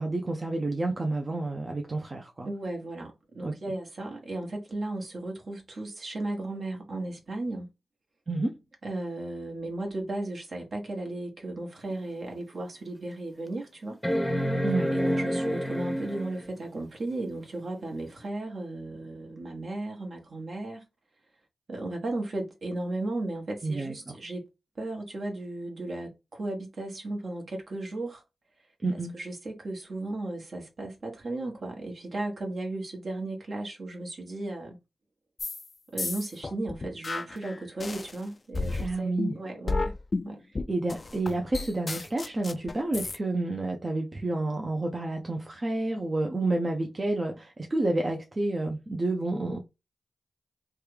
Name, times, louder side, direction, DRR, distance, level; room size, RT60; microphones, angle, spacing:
voice 1, 0.0-2.5 3.4-3.5 8.3-8.6 14.6-14.9 23.6-24.2 28.8-29.1 38.8-39.4 40.7-49.6, right 2 dB, 40° right, 0.6 m, -29 dB
voice 2, 2.4-7.7 8.8-14.0 14.9-20.9 21.7-24.5 24.8-28.2 28.9-34.8 35.9-39.9 40.2-40.4, right 2 dB, 60° right, 1.2 m, -35 dB
sound 1, 11.9-12.0 12.6-12.7 14.0-16.5 18.2-18.3, equal, 5° left, 0.7 m, -28 dB
sound 2, 35.4-35.7 36.0-38.2 38.5-43.2, left 3 dB, 45° left, 0.3 m, -32 dB
3.1 x 2.3 x 3.3 m
cardioid pair, 50°, 0 cm